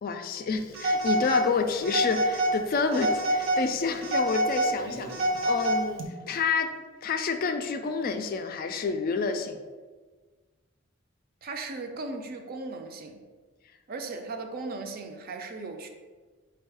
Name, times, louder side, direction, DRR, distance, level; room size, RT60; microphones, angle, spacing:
voice 1, 0.0-5.1 5.4-6.7 7.0-9.6, left 5 dB, 45° left, 7 dB, 0.3 m, -29 dB
Telephone, 0.7-1.5 1.8-2.6 2.9-3.6 4.0-6.0, right 1 dB, 80° right, 0.7 m, -26 dB
voice 2, 11.4-13.2 13.9-15.9, right 3 dB, 45° right, 5 dB, 0.4 m, -37 dB
4.4 x 2.3 x 4.7 m, 1.4 s
head